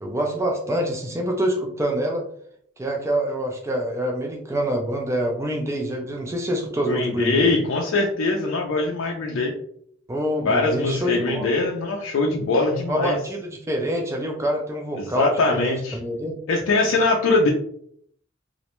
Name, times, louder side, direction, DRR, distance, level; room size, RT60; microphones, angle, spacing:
voice 1, 0.0-2.2 2.8-7.5 10.1-11.5 12.9-16.4, right 1 dB, 15° right, 1 dB, 0.3 m, -26 dB
voice 2, 6.9-9.5 10.4-13.2 15.0-16.0 16.5-17.5, left 3 dB, 65° left, 0 dB, 0.4 m, -22 dB
2.4 x 2.1 x 2.9 m, 0.65 s
head